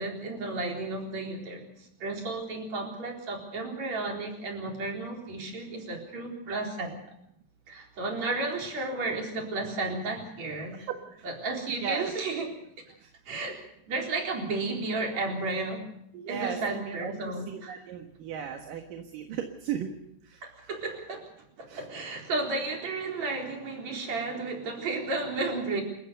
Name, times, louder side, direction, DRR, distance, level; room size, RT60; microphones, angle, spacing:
voice 1, 0.0-7.0 7.7-10.8 11.2-12.5 13.3-13.6 13.9-15.9 16.3-17.7 20.4-21.2 21.6-25.8, right 3 dB, 45° right, 1 dB, 5.1 m, -33 dB
voice 2, 11.8-12.4 16.1-19.9 20.3-20.4 21.7-21.8, right 8 dB, 60° right, 4 dB, 3.0 m, -36 dB
28.0 x 15.0 x 6.9 m, 0.73 s
omnidirectional pair, 4.7 m